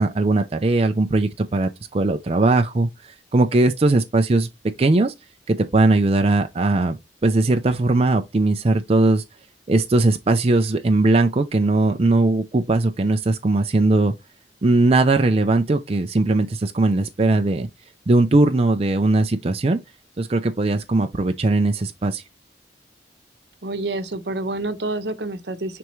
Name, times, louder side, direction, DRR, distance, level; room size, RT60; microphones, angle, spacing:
voice 1, 0.0-4.5 4.8-5.1 5.5-7.0 7.2-9.2 9.7-14.1 14.6-17.7 18.1-19.8 20.2-22.2, right 2 dB, 35° right, 0.5 m, -19 dB
voice 2, 23.6-25.8, right 2 dB, 70° right, 0.9 m, -28 dB
9.2 x 3.5 x 3.1 m
head